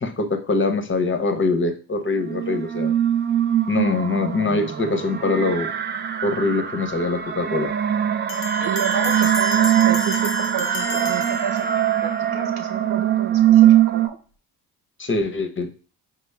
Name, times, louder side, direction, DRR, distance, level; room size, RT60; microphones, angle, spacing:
voice 1, 0.0-2.9 3.7-5.7 6.2-7.7 15.0-15.7, left 3 dB, 25° left, 7 dB, 0.7 m, -23 dB
sound 1, 2.2-14.1, right 10 dB, 25° right, 0.3 m, -21 dB
Bell, 8.3-12.1, left 7 dB, 80° left, 0.6 m, -33 dB
voice 2, 8.6-11.7 12.0-14.2, right 8 dB, 60° right, 5 dB, 0.9 m, -31 dB
5.3 x 2.0 x 3.3 m, 0.39 s
supercardioid pair, 65°, 44 cm